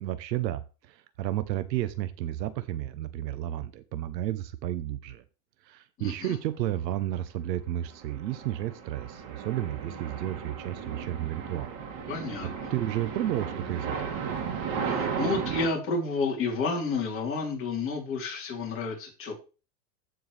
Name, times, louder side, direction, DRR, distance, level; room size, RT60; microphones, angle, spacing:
voice 1, 0.0-5.2 5.6-11.8 12.7-14.2, right 13 dB, 85° right, 13 dB, 1.0 m, -32 dB
voice 2, 6.0-6.4 12.1-12.5 14.9-19.4, left 4 dB, 25° left, -2 dB, 3.5 m, -30 dB
sound 1, 7.8-15.7, right 6 dB, 45° right, 2.5 m, -35 dB
14.0 x 4.7 x 3.3 m, 0.32 s
supercardioid pair, 140°, 49 cm